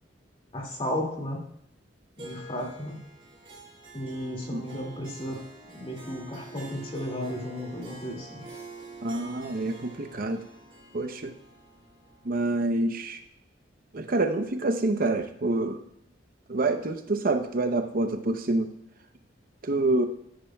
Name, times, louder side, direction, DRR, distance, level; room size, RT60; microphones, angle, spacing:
voice 1, 0.5-1.4 2.2-3.0 3.9-5.5 5.7-8.4, equal, 30° left, 1 dB, 2.3 m, -34 dB
Harp, 2.2-12.8, right 2 dB, 30° right, 2.8 m, -47 dB
voice 2, 9.0-10.4 10.9-11.3 12.2-13.2 13.9-15.8 16.5-18.7 19.6-20.1, right 2 dB, 50° right, 7 dB, 0.8 m, -27 dB
14.0 x 10.0 x 2.3 m, 0.77 s
head